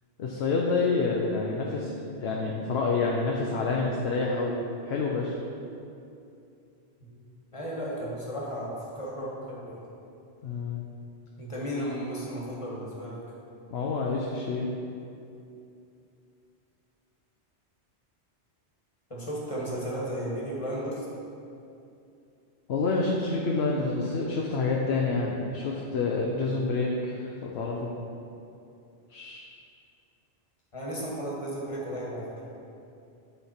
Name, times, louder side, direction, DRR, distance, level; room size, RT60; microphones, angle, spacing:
voice 1, 0.2-5.4 10.4-10.8 13.7-14.7 22.7-27.9 29.1-29.4, left 3 dB, 70° left, -2 dB, 1.0 m, -28 dB
voice 2, 7.5-9.8 11.4-13.2 19.1-21.1 30.7-32.3, equal, 30° left, -5 dB, 1.7 m, -34 dB
11.5 x 4.4 x 4.3 m, 2.6 s
omnidirectional pair, 1.1 m